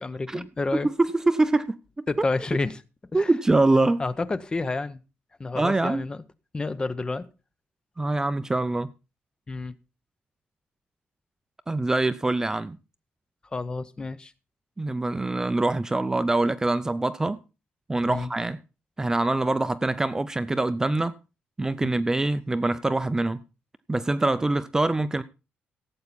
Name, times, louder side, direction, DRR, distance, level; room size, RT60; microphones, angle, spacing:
voice 1, 0.0-0.9 2.1-2.8 3.1-3.3 4.0-5.0 5.4-6.2 6.5-7.3 9.5-9.7 13.5-14.3 18.1-18.3 21.8-21.9, left 3 dB, 20° left, 0.8 m, -29 dB
voice 2, 0.7-1.8 3.1-4.0 5.5-6.0 8.0-8.9 11.7-12.8 14.8-17.4 17.9-18.6 19.0-21.2 21.6-23.4 23.9-25.2, right 2 dB, 15° right, 0.5 m, -24 dB
16.5 x 8.4 x 4.2 m
cardioid pair, 130°, 4 cm